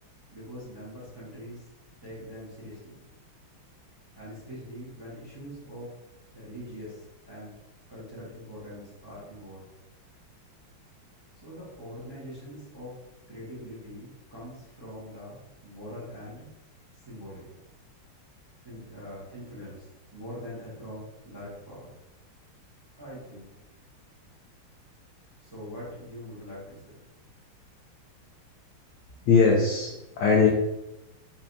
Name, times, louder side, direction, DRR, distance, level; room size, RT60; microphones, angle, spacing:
voice 1, 0.3-1.7 2.0-2.9 4.1-5.9 6.3-7.6 7.9-9.7 11.4-13.0 13.3-16.5 16.9-17.4 18.6-19.9 20.1-21.9 22.9-23.5 25.4-26.9, equal, 15° right, -8 dB, 0.9 m, -43 dB
voice 2, 29.2-30.5, left 5 dB, 75° left, -1 dB, 1.0 m, -20 dB
4.3 x 3.1 x 2.6 m, 0.95 s
omnidirectional pair, 2.4 m